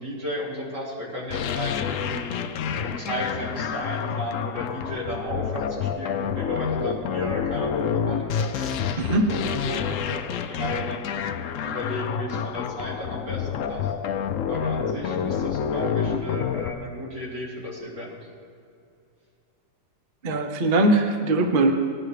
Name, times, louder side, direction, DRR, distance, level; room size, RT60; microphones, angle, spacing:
voice 1, 0.0-2.4 2.8-11.1 11.6-13.9 14.5-18.2, equal, 85° right, -5 dB, 3.6 m, -34 dB
sound 1, 1.3-16.7, left 7 dB, 70° left, 0.7 m, -28 dB
voice 2, 9.0-9.3 20.2-21.7, right 2 dB, 40° right, 5 dB, 0.8 m, -21 dB
19.0 x 11.0 x 3.2 m, 2.4 s
omnidirectional pair, 1.9 m